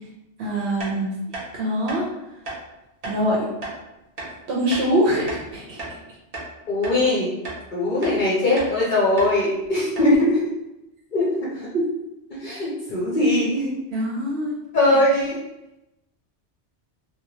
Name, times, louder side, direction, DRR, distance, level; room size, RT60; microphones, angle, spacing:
voice 1, 0.4-1.1 1.5-2.1 3.0-3.5 4.5-5.8 11.7-11.8 13.9-15.0, equal, 70° right, -4 dB, 0.9 m, -24 dB
sound 1, 0.8-0.9 1.3-1.5 1.9-2.0 2.5-2.6 3.0-3.2 3.6-3.8 4.2-4.3 4.7-4.9 5.3-6.0 6.3-6.5 6.8-7.0 7.4-7.6 8.0-8.2 8.6-8.7 9.2-9.3 9.6-9.7 10.0-10.2, right 2 dB, 40° right, 0.7 m, -34 dB
voice 2, 6.7-7.3 7.7-10.3 11.1-11.7 12.4-13.7 14.7-15.3, left 1 dB, 50° left, -6 dB, 0.7 m, -20 dB
2.9 x 2.1 x 2.8 m, 0.94 s
omnidirectional pair, 1.2 m